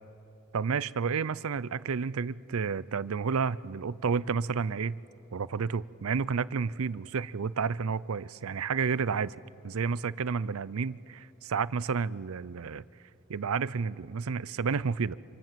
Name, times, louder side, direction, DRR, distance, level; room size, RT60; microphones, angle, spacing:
voice 1, 0.5-5.0 5.3-9.4 9.6-12.8 13.3-15.2, right 5 dB, 75° right, 19 dB, 0.5 m, -31 dB
27.0 x 25.5 x 7.5 m, 2.7 s
head